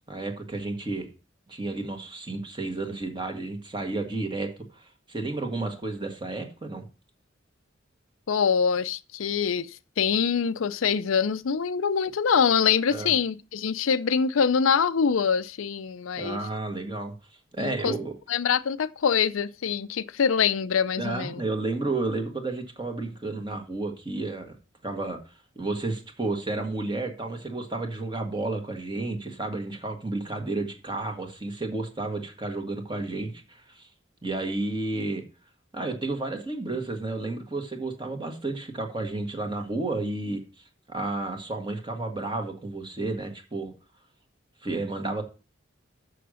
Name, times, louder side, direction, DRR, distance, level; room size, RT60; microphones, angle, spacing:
voice 1, 0.1-1.1 1.5-6.8 12.9-13.1 16.2-17.1 17.5-18.1 21.0-24.6 24.8-25.2 25.6-33.9 34.2-35.2 35.7-40.4 40.9-43.7 44.6-45.2, right 2 dB, 25° right, 1.7 m, -31 dB
voice 2, 8.3-16.4 17.6-17.9 18.3-21.4, left 6 dB, 85° left, 0.5 m, -24 dB
6.8 x 6.5 x 6.3 m
head